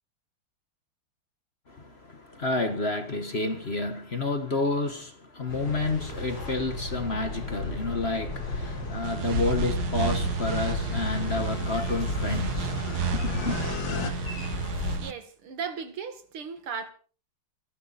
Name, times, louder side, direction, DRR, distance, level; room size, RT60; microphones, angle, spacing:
voice 1, 1.7-12.9 13.1-13.6, left 2 dB, 35° left, 1.4 m, -30 dB
sound 1, 5.5-15.0, left 2 dB, 85° left, 8.7 m, -33 dB
sound 2, 8.3-14.1, left 4 dB, 65° left, 2.4 m, -38 dB
sound 3, 9.0-15.1, right 9 dB, 55° right, 1.3 m, -33 dB
voice 2, 15.0-16.9, right 6 dB, 90° right, 2.8 m, -36 dB
28.5 x 11.0 x 4.2 m
omnidirectional pair, 2.3 m